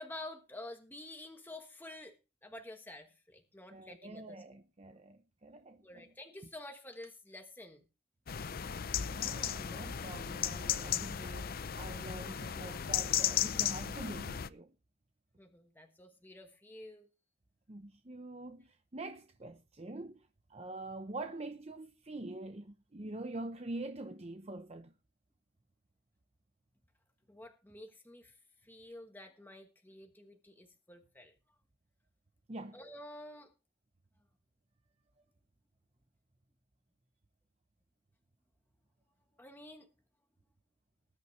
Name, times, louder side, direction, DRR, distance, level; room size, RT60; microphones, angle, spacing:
voice 1, 0.0-2.2 2.4-4.4 5.8-7.8 15.4-17.1 27.3-31.3 32.7-33.5 39.4-39.9, left 1 dB, 10° left, 1.3 m, -50 dB
voice 2, 3.7-6.1 9.0-11.5 11.7-14.7 17.7-24.9 32.5-32.8, right 2 dB, 30° right, 0.8 m, -45 dB
sound 1, 8.3-14.5, left 9 dB, 50° left, 0.5 m, -35 dB
19.5 x 9.6 x 3.2 m
head